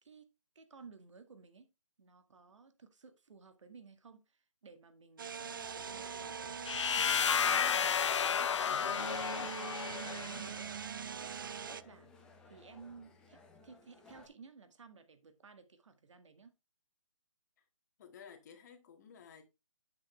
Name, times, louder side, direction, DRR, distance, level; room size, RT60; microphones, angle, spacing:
voice 1, 0.6-1.7 2.0-6.4 6.9-10.8 11.0-12.1 12.5-16.5, right 5 dB, 65° right, 1.9 m, -56 dB
sound 1, 5.2-11.8, right 7 dB, 40° right, 0.4 m, -43 dB
sound 2, 5.3-14.3, left 3 dB, 5° left, 0.8 m, -59 dB
sound 3, 6.7-10.5, left 7 dB, 60° left, 0.4 m, -32 dB
voice 2, 18.0-19.4, left 7 dB, 30° left, 1.8 m, -54 dB
8.7 x 7.8 x 3.2 m
hypercardioid pair, 165°, 17 cm